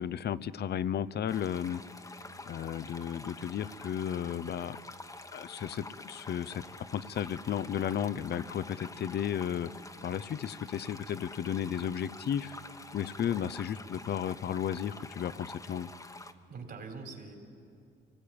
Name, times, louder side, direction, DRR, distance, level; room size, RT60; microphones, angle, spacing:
voice 1, 0.0-1.8 2.5-4.8 5.3-6.6 6.9-9.7 10.0-12.6 12.9-15.9, left 9 dB, 55° left, 17 dB, 0.7 m, -34 dB
sound 1, 1.3-16.3, left 2 dB, 15° left, 1.1 m, -48 dB
voice 2, 13.3-13.6 16.5-17.4, right 4 dB, 55° right, 3 dB, 3.7 m, -45 dB
24.5 x 18.0 x 8.7 m, 2.4 s
cardioid pair, 90°, 20 cm